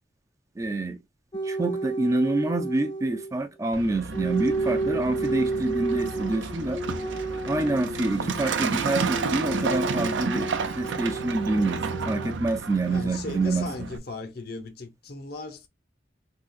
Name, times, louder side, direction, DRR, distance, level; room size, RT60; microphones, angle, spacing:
voice 1, 0.6-1.0 1.4-6.8 7.5-10.5 10.7-13.7, right 2 dB, 15° right, 0.4 m, -27 dB
sound 1, 1.3-3.3 4.1-12.3, right 2 dB, 25° left, 0.6 m, -32 dB
Truck, 3.7-14.0, right 5 dB, 80° right, 0.5 m, -31 dB
voice 2, 12.9-15.7, left 3 dB, 55° left, 0.8 m, -37 dB
3.7 x 2.9 x 2.3 m
head